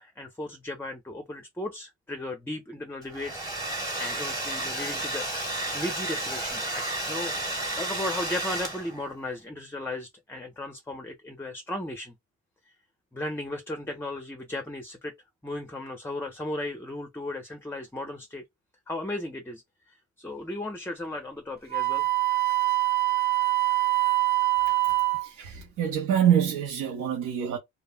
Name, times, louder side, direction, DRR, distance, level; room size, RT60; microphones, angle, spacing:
voice 1, 0.0-3.7 4.0-5.3 5.6-12.1 13.1-15.1 15.4-18.4 18.9-19.6 20.2-22.1, left 1 dB, 5° left, 0.5 m, -36 dB
Domestic sounds home sounds, 3.0-9.1, right 2 dB, 10° right, 1.2 m, -32 dB
Wind instrument woodwind instrument, 21.7-25.3, right 17 dB, 30° right, 0.8 m, -24 dB
voice 2, 25.2-27.6, right 9 dB, 85° right, 0.7 m, -25 dB
2.1 x 2.1 x 3.5 m
cardioid pair, 90°, 30 cm